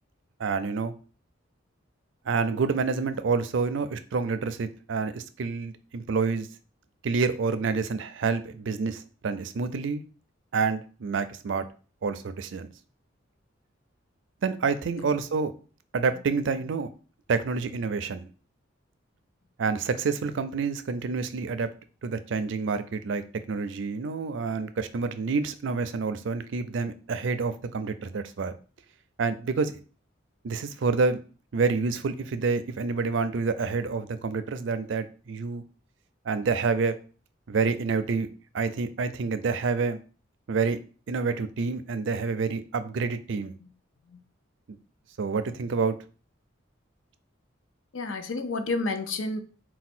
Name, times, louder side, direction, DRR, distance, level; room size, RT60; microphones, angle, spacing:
voice 1, 0.4-0.9 2.3-6.5 7.0-10.0 10.5-11.7 12.0-12.7 14.4-15.5 15.9-16.9 17.3-18.3 19.6-21.7 22.0-28.5 29.2-29.8 30.4-31.2 31.5-35.6 36.2-37.0 37.5-38.3 38.5-40.0 40.5-40.8 41.1-43.5 45.2-46.0, right 4 dB, 65° right, 11 dB, 0.4 m, -28 dB
voice 2, 47.9-49.4, left 3 dB, 80° left, 7 dB, 0.6 m, -30 dB
4.1 x 2.2 x 4.3 m, 0.37 s
head